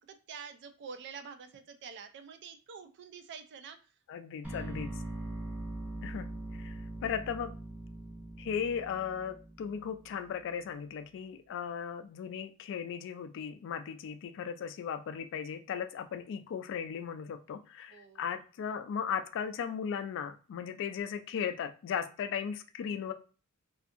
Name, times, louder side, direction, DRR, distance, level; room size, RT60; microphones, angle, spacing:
voice 1, 0.1-3.8 17.9-18.2, right 6 dB, 50° right, 8 dB, 0.4 m, -47 dB
voice 2, 4.1-4.9 6.0-7.5 8.4-23.1, left 7 dB, 60° left, 10 dB, 0.3 m, -37 dB
sound 1, 4.4-10.5, right 1 dB, 5° right, 0.6 m, -42 dB
2.6 x 2.4 x 2.4 m, 0.36 s
head